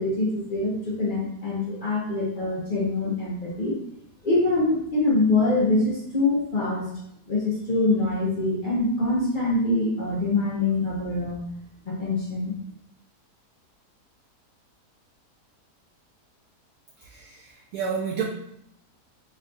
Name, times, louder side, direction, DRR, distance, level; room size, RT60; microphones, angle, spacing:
voice 1, 0.0-3.8 4.2-6.9 7.3-11.4 11.9-12.5, left 2 dB, 70° left, -5 dB, 0.4 m, -24 dB
voice 2, 17.0-18.2, right 6 dB, 70° right, -3 dB, 0.9 m, -30 dB
3.4 x 2.3 x 3.7 m, 0.75 s
omnidirectional pair, 1.8 m